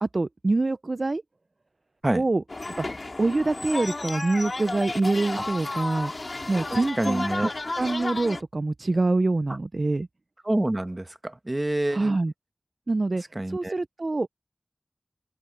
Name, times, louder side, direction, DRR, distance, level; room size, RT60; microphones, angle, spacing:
voice 1, 0.0-1.2 2.1-2.4 2.8-2.9 3.2-6.1 6.5-7.5 7.8-10.1 11.9-12.3 12.9-14.3, right 2 dB, 65° right, 0.4 m, -25 dB
sound 1, 2.5-8.4, left 2 dB, 65° left, 2.2 m, -32 dB
voice 2, 7.0-7.5 10.4-12.2 13.3-13.7, right 1 dB, 35° right, 1.2 m, -27 dB
open air
wide cardioid pair, 45°, 0 cm